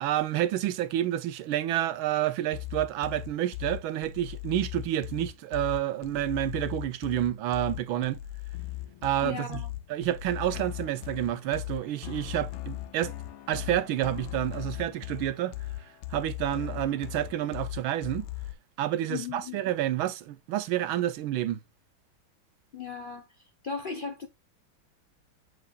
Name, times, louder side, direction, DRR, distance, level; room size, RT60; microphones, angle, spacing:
voice 1, 0.0-8.2 9.0-9.6 9.9-13.1 13.5-15.5 15.8-18.3 18.8-21.6, right 13 dB, 90° right, 1.5 m, -29 dB
sound 1, 2.5-18.5, left 15 dB, 90° left, 1.6 m, -38 dB
voice 2, 9.2-9.7 19.1-19.6 22.7-23.3 23.6-24.3, left 6 dB, 55° left, 0.5 m, -36 dB
7.9 x 5.8 x 2.3 m
omnidirectional pair, 2.2 m